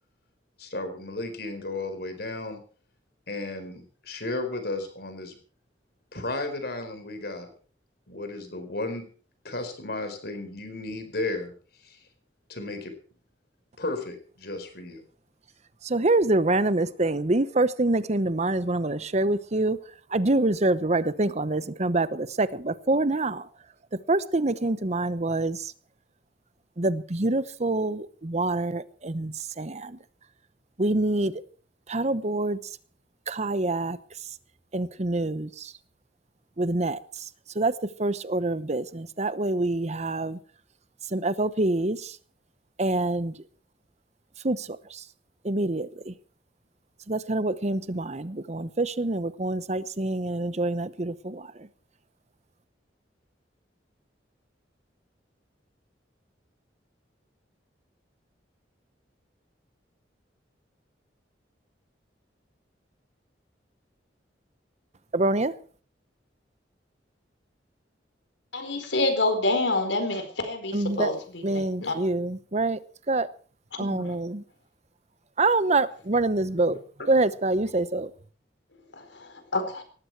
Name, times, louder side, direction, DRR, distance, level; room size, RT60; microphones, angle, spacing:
voice 1, 0.6-2.6 3.3-5.4 6.1-7.5 8.1-9.0 9.4-11.5 11.8-12.0 12.5-12.9 13.8-15.0, left 2 dB, 60° left, 7 dB, 4.5 m, -34 dB
voice 2, 15.8-19.8 20.1-23.4 24.1-25.6 26.8-30.0 30.8-31.3 31.9-32.6 33.3-34.0 34.7-35.7 36.6-37.0 37.6-37.7 38.0-40.4 41.1-42.1 42.8-43.3 44.4-44.7 45.4-46.1 47.1-51.4 65.1-65.5 70.7-71.1 71.4-72.8 73.1-73.3 73.8-74.4 75.4-76.8 77.1-78.1, right 2 dB, 40° right, 15 dB, 0.9 m, -26 dB
voice 3, 68.5-71.9 73.9-74.1 79.0-79.8, left 2 dB, 85° left, 7 dB, 4.4 m, -28 dB
18.5 x 14.5 x 4.7 m, 0.42 s
head